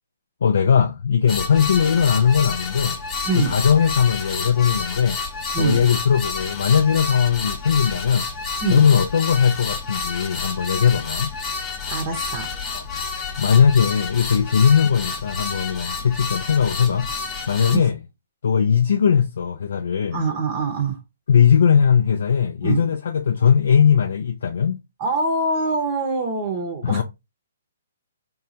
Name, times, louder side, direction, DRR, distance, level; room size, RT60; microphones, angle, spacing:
voice 1, 0.4-3.0 3.3-5.2 5.6-8.3 8.7-11.3 12.7-12.8 13.4-17.1 17.5-17.9 18.4-20.2 21.3-24.8 26.8-27.0, left 7 dB, 65° left, 0.4 m, -19 dB
sound 1, 1.3-17.8, left 4 dB, 20° left, 0.8 m, -30 dB
voice 2, 3.2-3.5 5.5-5.8 8.6-8.9 11.9-12.5 17.7-17.9 20.1-21.0 22.6-22.8 25.0-27.0, right 3 dB, 35° right, 0.7 m, -24 dB
3.7 x 2.3 x 2.8 m
hypercardioid pair, 135°, 0 cm